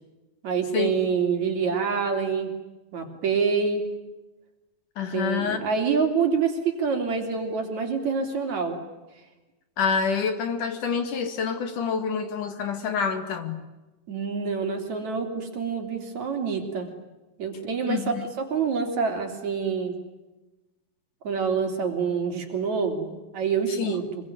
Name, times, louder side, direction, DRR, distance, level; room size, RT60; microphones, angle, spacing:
voice 1, 0.4-2.5 2.9-3.8 5.1-8.8 14.1-16.9 17.4-18.0 18.4-20.0 21.2-24.0, right 5 dB, 50° right, 4 dB, 4.6 m, -26 dB
voice 2, 5.0-5.6 9.8-13.6 17.9-18.3 23.7-24.0, left 6 dB, 60° left, 8 dB, 3.5 m, -27 dB
26.5 x 23.0 x 9.6 m, 1.1 s
omnidirectional pair, 4.1 m